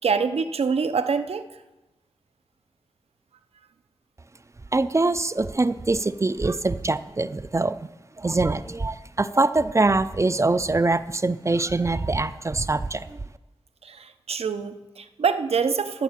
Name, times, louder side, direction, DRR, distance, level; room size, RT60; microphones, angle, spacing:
voice 1, 0.0-1.4 13.8-16.0, right 5 dB, 85° right, 10 dB, 0.7 m, -25 dB
voice 2, 4.7-7.8 8.2-13.2, right 3 dB, 30° right, 13 dB, 0.5 m, -23 dB
13.5 x 7.5 x 7.3 m, 1.1 s
cardioid pair, 60°, 10 cm